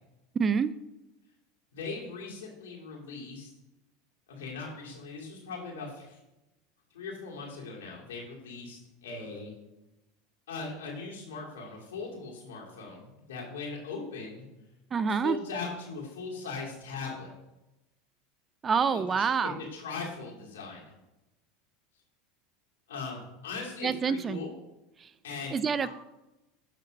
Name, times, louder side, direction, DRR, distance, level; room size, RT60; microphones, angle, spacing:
voice 1, 0.4-0.7 14.9-15.4 18.6-19.6 23.8-24.4 25.0-25.1 25.5-25.9, right 6 dB, 30° right, 15 dB, 0.4 m, -27 dB
voice 2, 1.7-3.5 4.3-6.2 6.9-9.5 10.5-14.4 15.1-17.3 18.9-20.9 22.9-24.5 25.2-25.9, left 4 dB, 85° left, -3 dB, 2.6 m, -39 dB
8.3 x 4.0 x 5.2 m, 0.97 s
hypercardioid pair, 95°, 0 cm